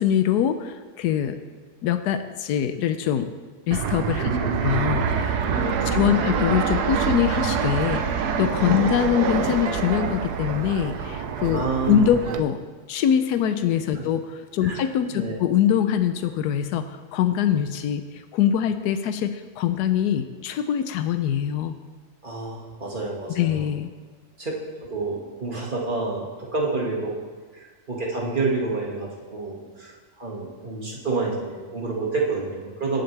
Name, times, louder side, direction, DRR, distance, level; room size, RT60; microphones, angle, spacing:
voice 1, 0.0-1.4 1.8-3.3 3.7-4.3 4.6-12.6 12.9-21.8 23.4-23.9, left 9 dB, 90° left, 9 dB, 1.2 m, -23 dB
Fixed-wing aircraft airplane, 3.7-12.4, right 6 dB, 80° right, 1.3 m, -26 dB
voice 2, 4.2-4.7 5.4-6.4 8.7-8.9 11.5-12.4 13.9-14.0 14.6-14.8 15.1-15.4 22.2-23.7 24.4-24.5 24.8-27.1 27.5-33.0, right 3 dB, 30° right, -3 dB, 2.0 m, -29 dB
18.0 x 8.0 x 3.3 m, 1.4 s
omnidirectional pair, 1.7 m